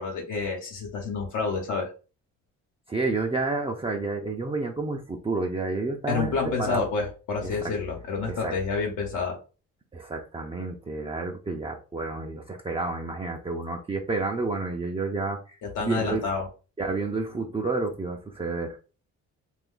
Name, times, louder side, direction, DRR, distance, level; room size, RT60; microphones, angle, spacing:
voice 1, 0.0-1.9 6.1-9.4 15.6-16.4, left 4 dB, 80° left, -1 dB, 1.1 m, -29 dB
voice 2, 2.9-6.8 7.4-7.7 8.3-8.5 9.9-16.2 16.8-18.8, right 3 dB, 20° right, 0 dB, 0.5 m, -30 dB
2.6 x 2.5 x 3.7 m, 0.35 s
cardioid pair, 90°, 30 cm